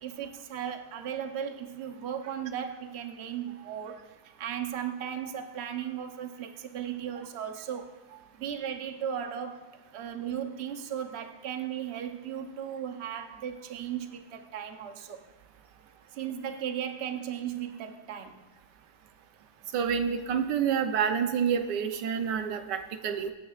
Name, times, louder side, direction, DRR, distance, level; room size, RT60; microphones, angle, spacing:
voice 1, 0.0-8.0 8.3-9.7 9.9-15.2 16.1-18.4, right 9 dB, 50° right, 6 dB, 0.9 m, -36 dB
voice 2, 19.7-23.3, right 7 dB, 85° right, 7 dB, 1.4 m, -28 dB
24.0 x 9.3 x 2.4 m, 1.1 s
omnidirectional pair, 1.8 m